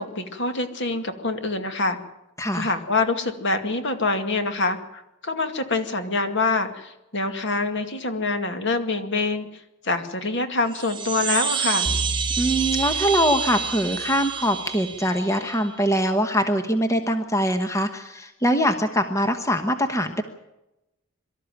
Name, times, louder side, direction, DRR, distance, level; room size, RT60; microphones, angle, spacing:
voice 1, 0.0-2.0 2.5-11.9, left 3 dB, 55° left, 7 dB, 2.3 m, -25 dB
voice 2, 2.4-2.7 12.4-20.2, equal, 15° left, 7 dB, 1.1 m, -23 dB
sound 1, 10.7-15.7, right 8 dB, 20° right, 1.7 m, -28 dB
sound 2, 11.9-14.3, equal, 55° right, 2.2 m, -33 dB
24.0 x 13.0 x 9.2 m, 0.93 s
head